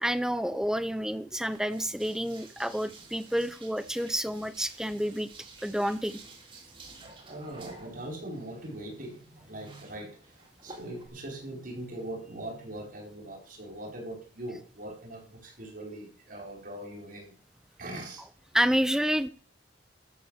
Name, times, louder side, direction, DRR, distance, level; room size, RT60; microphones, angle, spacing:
voice 1, 0.0-5.3 5.6-6.2 18.5-19.3, equal, 5° right, 13 dB, 0.7 m, -29 dB
sound 1, 1.3-11.1, right 3 dB, 25° right, 3.3 m, -52 dB
voice 2, 6.9-17.4 17.8-18.3, right 1 dB, 45° right, 1 dB, 5.2 m, -41 dB
13.5 x 7.7 x 6.7 m, 0.41 s
head